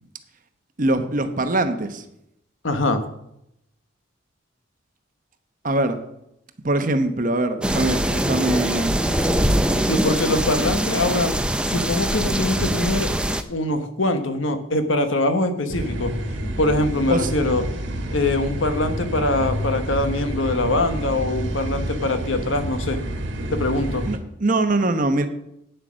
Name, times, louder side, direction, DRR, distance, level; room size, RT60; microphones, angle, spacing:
voice 1, 0.8-2.0 5.6-6.0 6.6-9.0 17.1-17.3 24.1-25.3, right 2 dB, 40° right, 8 dB, 0.9 m, -22 dB
voice 2, 2.6-3.0 9.9-11.3 11.7-13.1 13.5-16.1 16.6-17.6 18.1-23.0 23.5-24.0, left 2 dB, 70° left, 8 dB, 1.2 m, -23 dB
sound 1, 7.6-13.4, right 1 dB, 5° right, 0.5 m, -22 dB
sound 2, 15.7-24.2, equal, 65° right, 1.5 m, -28 dB
9.2 x 7.9 x 6.2 m, 0.79 s
head